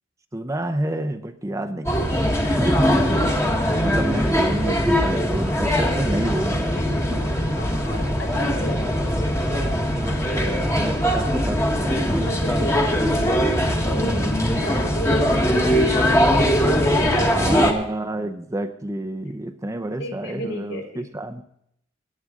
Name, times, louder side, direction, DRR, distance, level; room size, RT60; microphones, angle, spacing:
voice 1, 0.3-2.0 2.6-3.2 3.8-6.7 7.1-7.2 9.9-12.3 14.0-14.5 17.2-21.4, right 1 dB, 15° right, 7 dB, 0.7 m, -29 dB
sound 1, 1.9-17.7, equal, 15° left, 1.4 m, -21 dB
voice 2, 4.0-4.3 4.6-4.8 6.5-9.0 12.3-13.1 13.6-14.3 14.6-16.6 16.9-17.7 20.0-21.0, equal, 75° left, 1 dB, 4.1 m, -34 dB
18.5 x 9.5 x 3.7 m, 0.73 s
head